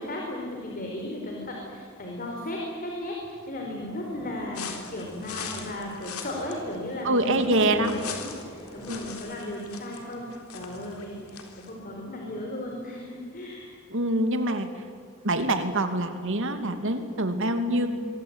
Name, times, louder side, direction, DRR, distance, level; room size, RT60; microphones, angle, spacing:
voice 1, 0.0-13.7 17.7-17.9, left 1 dB, 40° left, 0 dB, 4.6 m, -36 dB
sound 1, 3.9-5.9 6.2-9.1, left 1 dB, 20° left, 6.8 m, -47 dB
sound 2, 4.5-11.7, left 6 dB, 80° left, 3.9 m, -41 dB
voice 2, 7.0-7.9 8.2-8.4 8.9-9.1 13.9-14.7 15.2-17.9, right 1 dB, 60° right, 7 dB, 2.7 m, -25 dB
25.5 x 22.5 x 9.0 m, 2.2 s
head